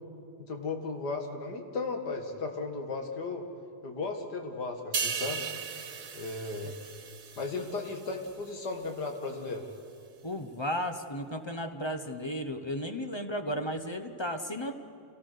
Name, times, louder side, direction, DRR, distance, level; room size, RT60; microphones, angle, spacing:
voice 1, 0.5-3.5 3.8-5.4 6.1-6.7 7.4-9.6, left 3 dB, 85° left, 4 dB, 2.6 m, -35 dB
sound 1, 4.9-8.5 8.8-9.1, right 6 dB, 75° right, 1.8 m, -37 dB
voice 2, 10.2-14.7, equal, 20° left, 7 dB, 0.8 m, -34 dB
28.0 x 18.0 x 6.7 m, 2.7 s
omnidirectional pair, 1.7 m